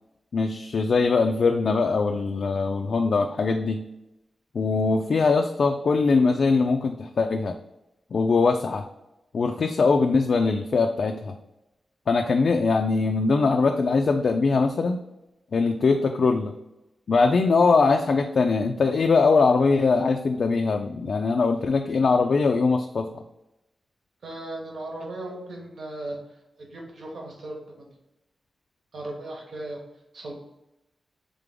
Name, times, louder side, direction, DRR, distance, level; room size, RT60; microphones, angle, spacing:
voice 1, 0.3-3.8 4.5-7.5 8.1-8.8 9.3-11.3 12.1-15.0 15.5-16.5 17.1-23.2, left 4 dB, 60° left, 4 dB, 0.3 m, -22 dB
voice 2, 24.2-26.2 26.6-27.9 28.9-29.8 30.1-30.3, right 1 dB, 75° right, -1 dB, 1.3 m, -37 dB
3.7 x 3.5 x 3.7 m, 0.93 s
wide cardioid pair, 130°, 0 cm